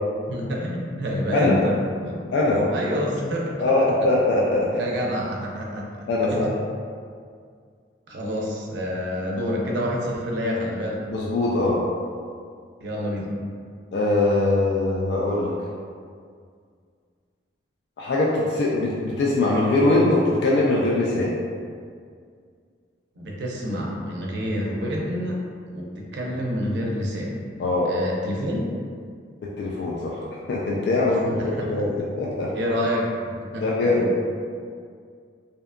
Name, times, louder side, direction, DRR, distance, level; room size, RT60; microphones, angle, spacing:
voice 1, 0.3-3.9 4.7-5.9 6.3-6.4 8.1-11.0 12.8-13.3 23.2-25.4 25.7-27.4 27.8-28.7 31.2-31.7 32.5-33.1 33.5-34.1, equal, 70° right, -2 dB, 0.5 m, -28 dB
voice 2, 3.6-4.7 6.1-6.5 11.1-11.8 13.9-15.5 18.0-21.3 27.6-27.9 29.6-30.2 30.5-31.9 32.2-32.5 33.6-34.1, left 2 dB, 65° left, -4 dB, 0.3 m, -22 dB
2.7 x 2.2 x 2.4 m, 2.1 s
head